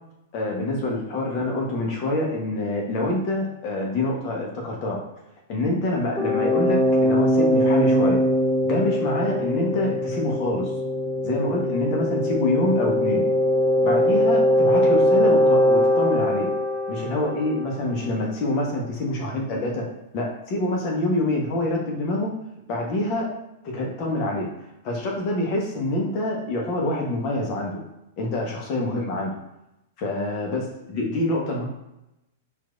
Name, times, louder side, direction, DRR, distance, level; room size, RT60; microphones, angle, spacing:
voice 1, 0.3-5.0 5.5-8.2 8.6-10.7 11.2-13.3 13.8-16.5 16.9-19.8 20.1-22.3 22.7-23.3 23.6-27.7 28.2-29.3 30.0-31.7, left 1 dB, 45° left, -1 dB, 1.0 m, -26 dB
sound 1, 6.2-17.8, left 1 dB, 10° right, 0.7 m, -21 dB
4.6 x 2.6 x 2.5 m, 0.89 s
hypercardioid pair, 105°, 0 cm